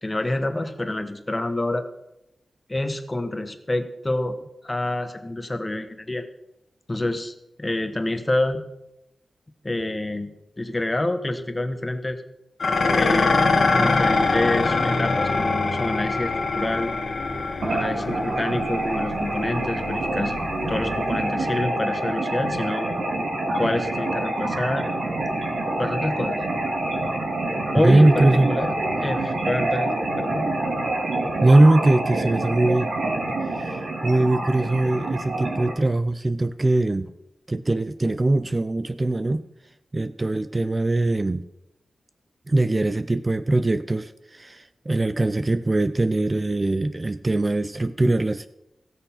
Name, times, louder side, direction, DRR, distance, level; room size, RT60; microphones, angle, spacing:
voice 1, 0.0-1.8 2.7-4.4 4.6-6.2 6.9-8.6 9.6-12.2 12.9-16.9 17.6-20.4 20.7-22.9 23.5-24.9 25.8-26.4 27.5-28.7 29.0-29.9 30.2-30.5, left 1 dB, 20° left, 8 dB, 1.2 m, -27 dB
Dishes pots and pans, 12.6-21.4, left 3 dB, 65° left, 1.7 m, -24 dB
sound 1, 17.6-35.7, right 2 dB, 75° right, 2.7 m, -27 dB
voice 2, 27.8-28.5 31.4-32.9 33.3-37.1 37.5-39.4 39.9-41.5 42.5-48.5, right 2 dB, 25° right, 13 dB, 0.4 m, -21 dB
16.5 x 6.5 x 5.7 m, 0.90 s
wide cardioid pair, 95°, 0 cm